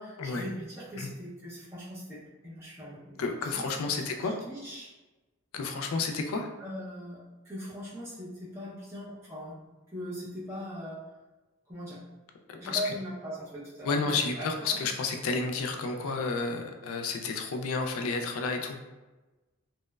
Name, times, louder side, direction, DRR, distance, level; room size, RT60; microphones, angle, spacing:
voice 1, 0.0-3.2 3.5-4.9 6.6-9.6 9.9-11.1 11.7-12.0 12.6-14.8, equal, 10° right, -8 dB, 0.6 m, -40 dB
voice 2, 3.2-4.4 5.5-6.5 12.5-12.9 13.8-18.8, left 4 dB, 80° left, 4 dB, 0.3 m, -31 dB
2.9 x 2.0 x 2.2 m, 1.1 s
head